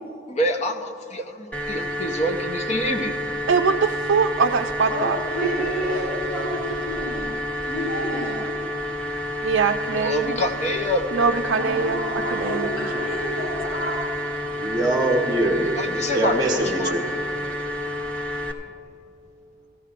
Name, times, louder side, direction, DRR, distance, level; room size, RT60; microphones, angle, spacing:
voice 1, 0.3-3.2 10.0-11.1 15.8-16.9, left 1 dB, 35° left, 5 dB, 0.7 m, -26 dB
sound 1, 1.5-18.5, equal, 5° left, 0.9 m, -29 dB
voice 2, 3.5-5.2 5.6-6.0 9.4-10.4 11.1-12.0 12.3-12.7 13.0-13.1, right 5 dB, 70° right, 1 dB, 0.4 m, -22 dB
voice 3, 4.9-8.4 11.5-14.0 16.5-16.8 17.9-18.5, equal, 85° left, -7 dB, 2.8 m, -30 dB
voice 4, 14.6-15.9 16.1-17.0, right 1 dB, 20° right, 0 dB, 1.2 m, -23 dB
17.5 x 14.5 x 2.5 m, 2.6 s
head